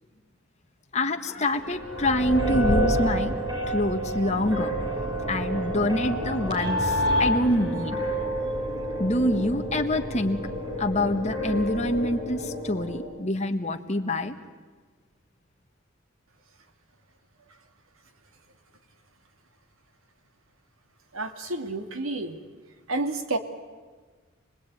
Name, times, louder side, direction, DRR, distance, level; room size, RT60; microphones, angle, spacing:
voice 1, 0.9-3.3 3.7-4.8 5.3-8.0 9.0-10.4 10.8-14.4, left 1 dB, 35° left, 5 dB, 1.6 m, -26 dB
ab harbourt atmos, 1.7-13.0, equal, 25° right, 6.3 m, -28 dB
voice 2, 21.1-22.4 22.9-23.4, right 2 dB, 85° right, 7 dB, 2.3 m, -30 dB
29.0 x 20.0 x 9.5 m, 1.4 s
head